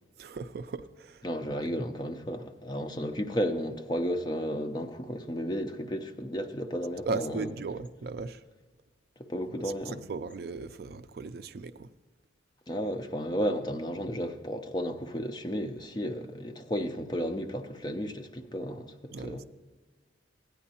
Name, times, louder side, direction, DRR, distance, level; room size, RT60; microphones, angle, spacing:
voice 1, 0.2-1.3 7.0-8.4 9.6-11.9 19.1-19.5, right 4 dB, 55° right, 0.3 m, -37 dB
voice 2, 1.2-7.5 9.3-10.0 12.7-19.4, equal, 20° left, 0.5 m, -33 dB
15.0 x 9.2 x 2.8 m
head